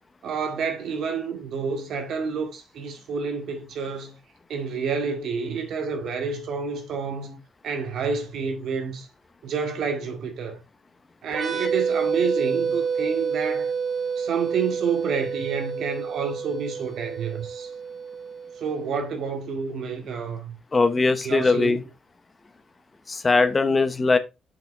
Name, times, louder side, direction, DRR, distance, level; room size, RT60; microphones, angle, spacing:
voice 1, 0.2-4.2 4.5-7.4 7.6-9.1 9.4-10.6 11.2-13.7 14.2-17.7 18.6-20.6 21.2-21.8, right 5 dB, 70° right, 2.1 m, -29 dB
sound 1, 11.3-18.8, right 6 dB, 45° right, 1.7 m, -28 dB
voice 2, 20.7-21.8 23.1-24.2, left 3 dB, 30° left, 0.9 m, -20 dB
7.1 x 5.8 x 3.5 m
cardioid pair, 90°, 0 cm